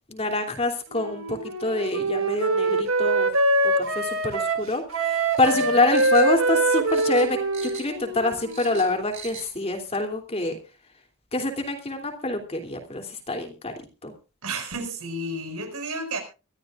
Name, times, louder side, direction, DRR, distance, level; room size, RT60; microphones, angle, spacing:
voice 1, 0.0-3.3 3.6-10.6 11.3-13.7 14.0-14.1, left 2 dB, 30° left, 5 dB, 3.0 m, -26 dB
Wind instrument woodwind instrument, 0.9-8.9, right 2 dB, 65° right, 2.4 m, -24 dB
sound 1, 5.3-6.6 6.9-8.0 8.3-9.5 9.8-9.9, right 7 dB, 35° right, 5.4 m, -42 dB
voice 2, 14.4-16.2, right 2 dB, 90° right, 5 dB, 5.3 m, -32 dB
24.0 x 13.0 x 2.5 m, 0.31 s
head